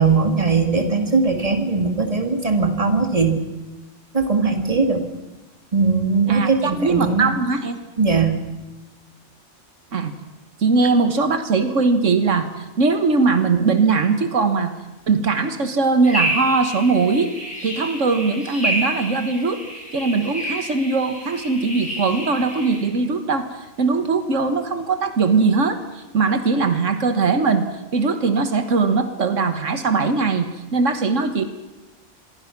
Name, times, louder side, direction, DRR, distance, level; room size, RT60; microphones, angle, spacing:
voice 1, 0.0-3.4 4.1-5.0 5.7-7.3 8.0-8.4, right 4 dB, 30° right, 5 dB, 2.4 m, -19 dB
voice 2, 6.3-7.8 9.9-10.1 10.6-14.7 15.1-17.3 17.6-19.6 19.9-27.7 27.9-31.4, right 4 dB, 80° right, 9 dB, 1.8 m, -20 dB
sound 1, 16.0-22.9, right 1 dB, 5° left, 7.6 m, -29 dB
26.0 x 23.0 x 6.0 m, 1.0 s
omnidirectional pair, 1.3 m